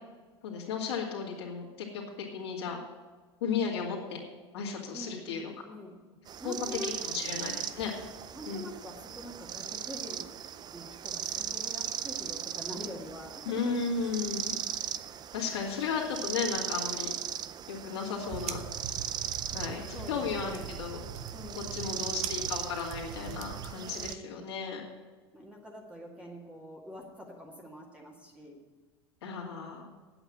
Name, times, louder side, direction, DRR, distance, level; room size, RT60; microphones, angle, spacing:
voice 1, 0.4-2.0 2.3-2.8 3.4-4.2 4.5-5.5 6.4-6.5 6.8-7.9 8.5-8.6 13.5-14.6 15.3-17.1 17.7-18.6 19.5-21.0 21.7-24.8 29.2-29.9, left 5 dB, 75° left, -3 dB, 2.3 m, -34 dB
voice 2, 4.9-5.9 6.4-7.6 8.3-10.3 10.7-13.8 15.1-15.3 19.9-20.7 21.3-22.2 23.8-24.5 25.3-28.6, equal, 10° right, -2 dB, 2.1 m, -45 dB
sound 1, 6.3-24.2, right 9 dB, 30° right, 0.5 m, -38 dB
sound 2, 18.3-23.7, right 8 dB, 50° right, 0.8 m, -42 dB
8.8 x 8.0 x 8.6 m, 1.4 s
hypercardioid pair, 95°, 14 cm